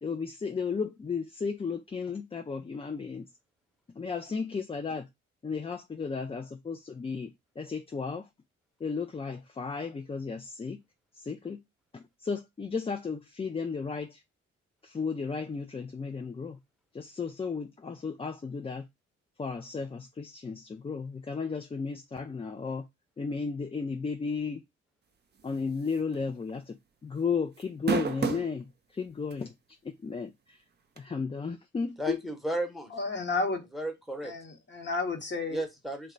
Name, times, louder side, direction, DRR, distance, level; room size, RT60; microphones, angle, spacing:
voice 1, 0.0-3.3 4.0-5.1 5.4-8.3 8.8-10.8 11.1-11.6 11.9-14.2 14.8-16.6 16.9-18.8 19.4-22.8 23.2-24.6 25.4-26.8 27.0-28.6 28.9-29.5 29.8-30.6 31.0-32.2, left 5 dB, 20° left, 0.4 m, -34 dB
sound 1, 25.9-26.1 26.5-26.6 27.6-28.5 29.3-29.4 31.0-31.1, right 6 dB, 30° right, 0.6 m, -29 dB
voice 2, 32.0-32.9 33.7-34.3 35.5-36.1, right 1 dB, ahead, 0.9 m, -34 dB
voice 3, 32.9-33.6 34.2-35.6, left 3 dB, 35° left, 1.1 m, -32 dB
2.9 x 2.3 x 3.6 m
hypercardioid pair, 40°, 32 cm